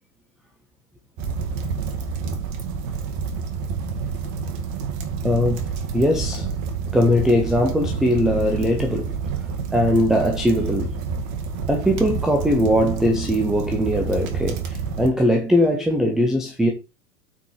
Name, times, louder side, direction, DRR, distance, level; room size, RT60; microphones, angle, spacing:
sound 1, 1.2-15.1, right 5 dB, 45° right, 2.0 m, -28 dB
voice 1, 5.2-5.6 5.9-6.5 6.9-9.1 9.7-10.9 11.7-16.7, equal, ahead, 0.3 m, -20 dB
8.5 x 4.6 x 4.6 m
hypercardioid pair, 105°, 46 cm